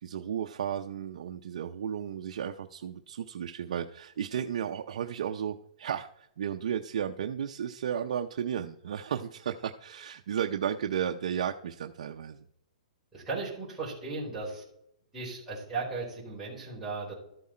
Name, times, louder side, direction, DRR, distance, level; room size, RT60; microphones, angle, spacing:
voice 1, 0.0-12.5, right 8 dB, 60° right, 4 dB, 0.6 m, -34 dB
voice 2, 13.1-14.6 15.1-17.1, right 3 dB, 5° right, -9 dB, 4.0 m, -36 dB
13.0 x 7.6 x 4.3 m, 0.76 s
hypercardioid pair, 165°, 4 cm